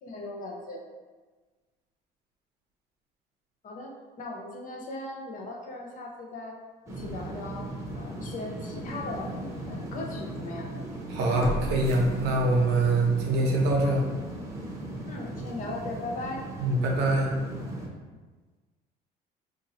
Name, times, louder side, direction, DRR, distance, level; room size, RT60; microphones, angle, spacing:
voice 1, 0.0-0.8 3.6-6.6 6.9-9.3 9.7-10.7 15.1-16.4, left 2 dB, 50° left, 0 dB, 0.7 m, -38 dB
sound 1, 6.9-17.9, right 1 dB, 15° right, 0.8 m, -37 dB
sound 2, 8.1-8.2 8.8-8.9 11.4-12.8 13.2-13.3, left 1 dB, 15° left, 0.4 m, -35 dB
voice 2, 11.1-14.0 16.6-17.3, right 2 dB, 85° right, 0 dB, 0.7 m, -24 dB
2.7 x 2.6 x 4.0 m, 1.4 s
cardioid pair, 110°, 17 cm